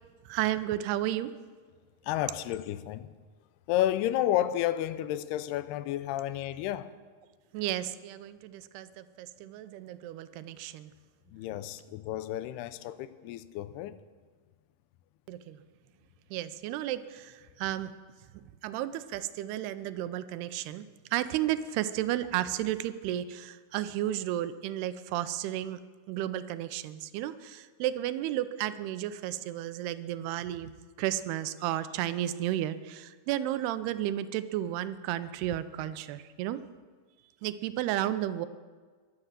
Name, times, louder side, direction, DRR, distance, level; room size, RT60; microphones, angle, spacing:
voice 1, 0.3-1.3 7.5-10.9 15.3-15.6 16.3-17.9 18.3-20.9 21.1-25.8 26.1-36.6 37.4-38.5, right 13 dB, 85° right, 2.7 m, -33 dB
voice 2, 2.0-3.1 3.7-6.9 11.3-14.0, left 12 dB, 85° left, 2.7 m, -31 dB
22.5 x 7.9 x 7.4 m
omnidirectional pair, 4.6 m